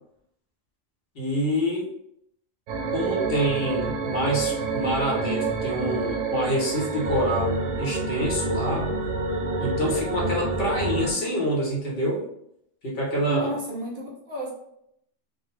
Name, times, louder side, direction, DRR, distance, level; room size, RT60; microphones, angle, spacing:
voice 1, 1.1-1.9 2.9-8.9 9.6-12.3 12.8-13.5, equal, 55° left, -3 dB, 0.9 m, -26 dB
sound 1, 2.7-11.1, right 3 dB, 90° right, 0.9 m, -28 dB
voice 2, 13.3-14.5, right 1 dB, 55° right, -2 dB, 0.8 m, -32 dB
2.4 x 2.0 x 3.1 m, 0.73 s
omnidirectional pair, 1.3 m